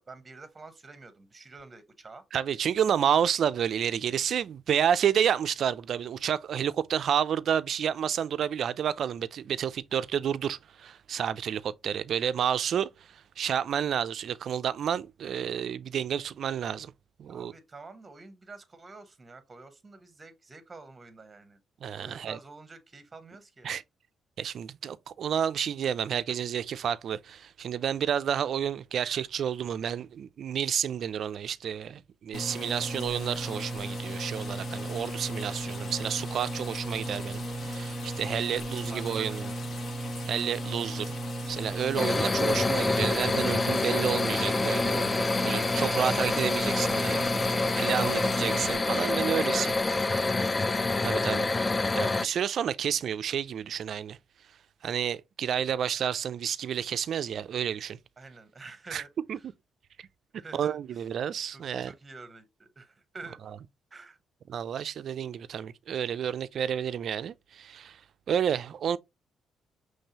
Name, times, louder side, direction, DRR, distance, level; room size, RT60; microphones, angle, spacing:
voice 1, 0.0-2.2 17.3-21.6 22.0-23.7 38.5-39.8 48.0-48.6 49.3-50.7 58.2-59.4 60.3-61.0 61.5-63.4 63.9-64.2, right 3 dB, 25° right, 0.9 m, -48 dB
voice 2, 2.3-16.9 17.2-17.5 21.8-22.4 23.6-23.8 24.4-39.5 40.3-41.1 41.5-45.1 45.4-47.3 47.8-49.7 51.0-51.5 51.9-54.2 54.8-58.0 58.9-59.0 59.3-59.4 60.5-61.9 63.5-63.6 64.5-68.0 68.3-69.0, right 8 dB, 60° right, 0.3 m, -30 dB
sound 1, 32.3-48.7, right 1 dB, 45° left, 1.0 m, -35 dB
sound 2, 42.0-52.3, left 3 dB, 25° left, 0.3 m, -27 dB
5.4 x 3.2 x 2.8 m
cardioid pair, 90°, 0 cm